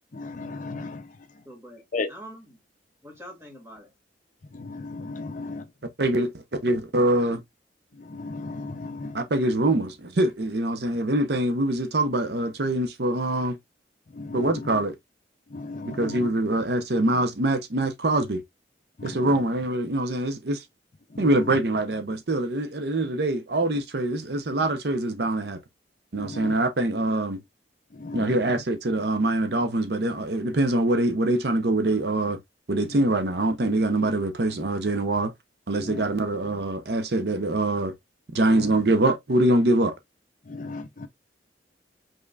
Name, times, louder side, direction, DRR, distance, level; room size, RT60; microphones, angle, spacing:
voice 1, 0.1-1.0 1.9-2.1 4.5-5.6 8.1-9.2 14.2-14.5 15.5-16.3 19.0-19.2 21.2-21.3 26.2-26.5 28.0-28.3 35.8-36.0 38.5-38.7 40.5-41.1, left 3 dB, 45° left, 0.6 m, -35 dB
voice 2, 1.5-2.6 3.0-3.9, equal, 15° right, 2.1 m, -45 dB
voice 3, 6.0-6.3 6.6-7.4 9.1-13.6 14.3-15.0 15.9-18.4 19.0-20.6 21.2-25.6 26.1-27.4 28.1-32.4 32.7-35.3 35.7-37.9 38.3-39.9, right 1 dB, 60° right, 0.7 m, -24 dB
5.4 x 3.7 x 2.4 m
head